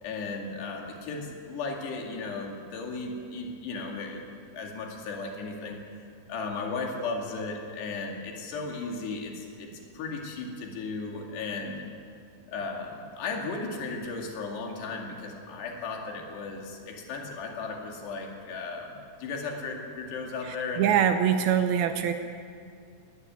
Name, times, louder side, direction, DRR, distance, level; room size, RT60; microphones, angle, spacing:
voice 1, 0.0-5.8 6.3-11.8 12.5-20.9, left 3 dB, 85° left, 1 dB, 4.4 m, -35 dB
voice 2, 20.5-22.1, right 9 dB, 75° right, 8 dB, 2.5 m, -24 dB
19.5 x 15.5 x 9.5 m, 2.3 s
omnidirectional pair, 4.7 m